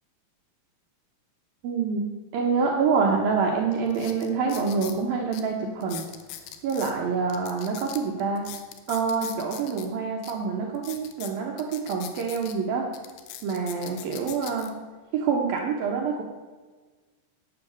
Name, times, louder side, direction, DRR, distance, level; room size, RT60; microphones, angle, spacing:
voice 1, 1.6-2.0 2.3-6.1 6.6-8.4 8.9-12.9 13.4-14.7 15.1-16.2, right 5 dB, 85° right, 0 dB, 2.0 m, -26 dB
sound 1, 3.2-3.3 3.9-5.0 5.3-5.4 5.8-6.9 7.3-9.9 10.2-10.3 10.7-12.5 12.9-14.7 15.3-15.6, left 11 dB, 75° left, 3.0 m, -41 dB
11.5 x 8.4 x 7.7 m, 1.3 s
omnidirectional pair, 5.9 m